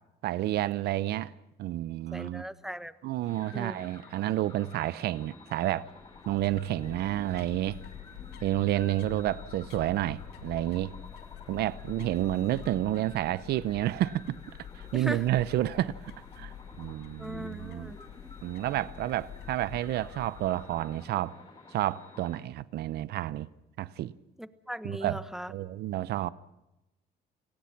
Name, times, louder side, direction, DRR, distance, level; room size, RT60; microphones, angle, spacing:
voice 1, 0.2-1.3 1.6-2.4 3.0-5.8 6.3-7.8 8.4-10.9 11.5-14.4 14.7-17.9 18.4-21.4 21.7-23.5 23.8-24.1 24.8-25.2 25.5-26.3, right 14 dB, 70° right, 0.8 m, -30 dB
voice 2, 2.1-2.9 3.5-3.8 14.9-15.2 17.2-18.0 24.4-25.5, equal, 5° right, 1.3 m, -38 dB
sound 1, 3.2-22.4, left 3 dB, 30° left, 7.1 m, -52 dB
sound 2, 5.9-21.1, left 9 dB, 75° left, 2.1 m, -47 dB
29.5 x 19.0 x 6.0 m
cardioid pair, 110°, 17 cm